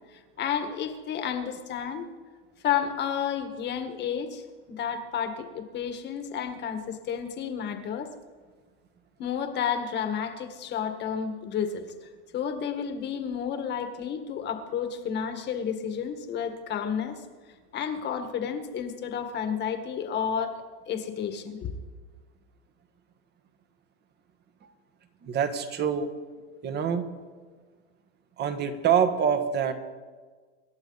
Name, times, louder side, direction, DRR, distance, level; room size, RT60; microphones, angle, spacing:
voice 1, 0.1-2.1 2.6-8.1 9.2-17.2 17.7-21.7, left 8 dB, 30° left, 7 dB, 1.7 m, -31 dB
voice 2, 25.2-26.1 26.6-27.1 28.4-29.7, right 7 dB, 30° right, 9 dB, 1.5 m, -25 dB
26.5 x 11.5 x 4.1 m, 1.5 s
supercardioid pair, 140°, 35 cm